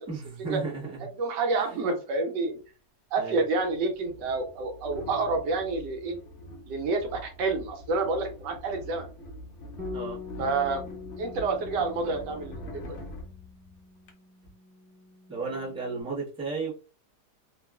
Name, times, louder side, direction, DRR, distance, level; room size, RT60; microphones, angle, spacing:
voice 1, 0.1-1.0 1.6-1.7 3.2-3.4 9.9-10.2 15.3-16.7, right 4 dB, 5° right, -6 dB, 0.6 m, -34 dB
voice 2, 1.2-2.6 3.1-6.2 6.7-9.1 10.4-10.8 11.2-13.0, right 3 dB, 85° right, 5 dB, 1.3 m, -28 dB
sound 1, 3.5-14.1, left 1 dB, 65° left, 0.7 m, -44 dB
Bass guitar, 9.8-16.0, left 4 dB, 20° right, 1.4 m, -44 dB
3.0 x 2.3 x 2.3 m, 0.35 s
omnidirectional pair, 1.8 m